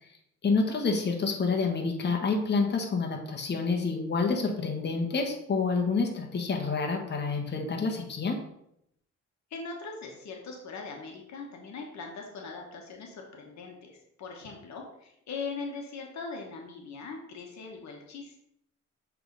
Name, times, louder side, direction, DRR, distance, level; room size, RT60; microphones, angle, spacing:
voice 1, 0.4-8.4, left 4 dB, 35° left, 1 dB, 1.2 m, -28 dB
voice 2, 9.5-18.3, left 4 dB, 65° left, 1 dB, 1.2 m, -40 dB
6.8 x 3.5 x 4.0 m, 0.76 s
cardioid pair, 90°, 30 cm